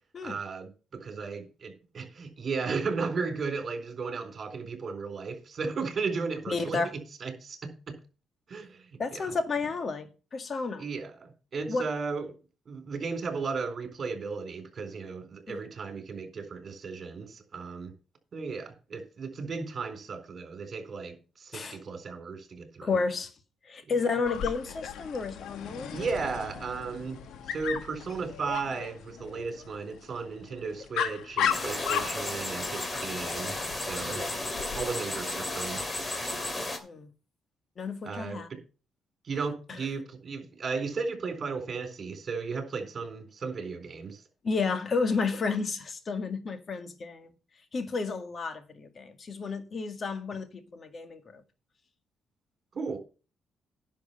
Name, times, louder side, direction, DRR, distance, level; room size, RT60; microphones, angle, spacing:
voice 1, 0.2-8.0 8.5-9.3 10.8-12.3 12.7-17.9 18.3-23.0 25.9-27.2 27.5-34.2 34.7-35.9 38.0-38.6 39.2-44.2 52.7-53.0, right 4 dB, 45° right, 3.9 m, -35 dB
voice 2, 6.5-6.9 9.0-10.8 11.7-11.8 15.5-15.6 21.5-21.8 22.8-23.3 23.7-26.0 36.8-37.1 37.8-38.5 44.4-47.3 47.7-51.4, left 4 dB, 45° left, 1.9 m, -31 dB
Dog, 24.2-34.8, left 8 dB, 80° left, 1.3 m, -36 dB
sound 1, 31.5-36.8, left 2 dB, 25° left, 2.5 m, -33 dB
10.5 x 6.5 x 5.7 m
cardioid pair, 90°, 0 cm